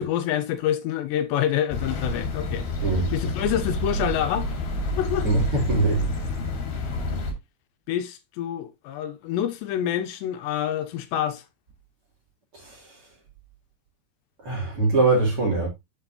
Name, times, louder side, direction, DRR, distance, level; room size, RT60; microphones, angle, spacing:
voice 1, 0.0-2.7 3.1-4.5 5.0-5.3 7.9-11.4, left 10 dB, 80° left, 3.1 m, -27 dB
sound 1, 1.7-7.3, left 1 dB, 65° left, 3.9 m, -28 dB
voice 2, 2.8-3.3 5.2-6.1 12.6-12.8 14.4-15.7, right 3 dB, 35° right, 3.1 m, -23 dB
8.7 x 7.6 x 2.7 m
omnidirectional pair, 5.1 m